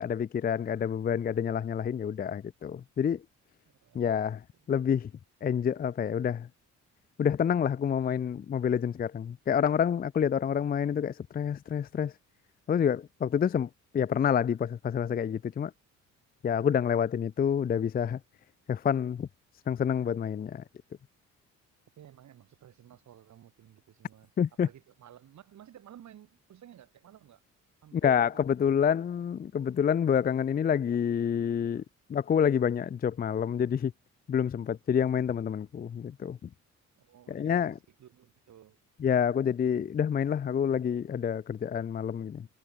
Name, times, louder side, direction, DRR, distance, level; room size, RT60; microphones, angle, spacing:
voice 1, 0.0-3.2 3.9-4.4 4.7-5.1 5.4-6.5 7.2-12.1 12.7-15.7 16.4-18.2 18.7-19.3 19.7-20.6 24.4-24.7 27.9-31.8 32.1-33.9 34.3-36.4 37.3-37.8 39.0-42.5, left 8 dB, 30° left, 0.5 m, -28 dB
voice 2, 3.8-4.4 22.0-24.3 24.6-27.4 27.8-28.9 37.0-38.8, right 11 dB, 65° right, 4.3 m, -54 dB
cardioid pair, 90°, 30 cm